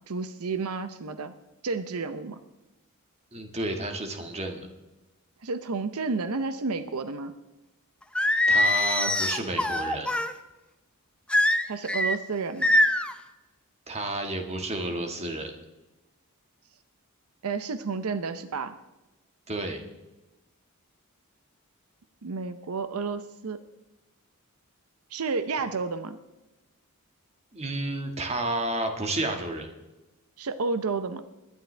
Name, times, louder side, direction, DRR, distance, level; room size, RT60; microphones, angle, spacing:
voice 1, 0.1-1.3 1.6-2.4 5.4-7.3 11.7-12.7 17.4-18.7 22.2-23.6 25.1-26.2 30.4-31.2, right 4 dB, 80° right, 11 dB, 0.7 m, -31 dB
voice 2, 3.3-4.7 8.5-10.1 13.9-15.5 19.5-19.8 27.5-29.7, right 2 dB, 30° right, 4 dB, 1.7 m, -31 dB
Singing, 8.2-10.3 11.3-12.2 12.6-13.1, left 1 dB, 5° left, 0.6 m, -23 dB
21.0 x 11.0 x 3.3 m, 1.0 s
head